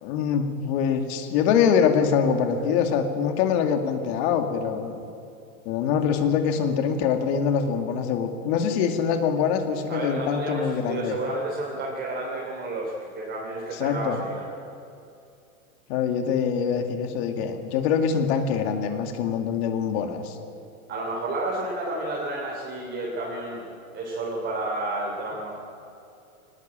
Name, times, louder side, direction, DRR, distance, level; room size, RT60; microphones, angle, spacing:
voice 1, 0.0-5.1 5.7-11.2 13.8-14.2 15.9-20.4, left 7 dB, 45° left, 6 dB, 2.4 m, -24 dB
voice 2, 9.9-14.5 20.9-25.5, right 2 dB, 25° right, -3 dB, 3.5 m, -31 dB
19.5 x 19.0 x 8.9 m, 2.6 s
hypercardioid pair, 140°, 43 cm